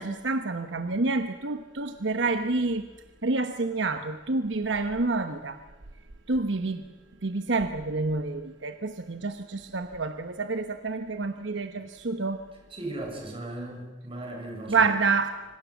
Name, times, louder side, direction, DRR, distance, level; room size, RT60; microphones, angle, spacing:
voice 1, 0.0-2.9 3.2-5.6 6.3-6.8 7.2-12.4 14.7-15.4, right 3 dB, 70° right, 8 dB, 1.1 m, -28 dB
voice 2, 12.7-14.9, right 1 dB, 30° right, 2 dB, 6.9 m, -37 dB
26.0 x 25.5 x 7.3 m, 1.2 s
head